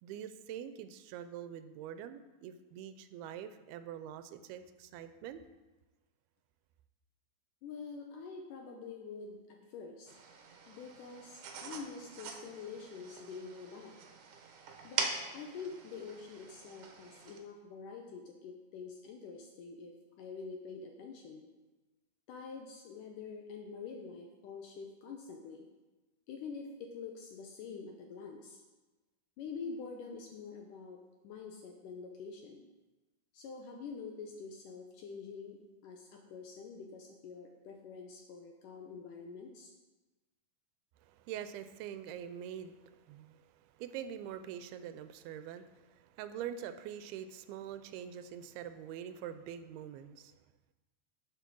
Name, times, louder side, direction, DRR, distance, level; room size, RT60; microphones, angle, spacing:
voice 1, 0.0-5.4 41.0-50.4, right 9 dB, 85° right, 11 dB, 2.5 m, -44 dB
voice 2, 7.6-10.1 10.7-14.0 14.8-21.5 22.3-25.7 26.3-28.6 29.4-32.6 33.3-35.6 35.8-39.7, left 5 dB, 75° left, 2 dB, 2.0 m, -46 dB
sound 1, 10.1-17.4, right 5 dB, 70° right, 2.3 m, -43 dB
8.1 x 7.1 x 6.1 m, 1.2 s
omnidirectional pair, 4.5 m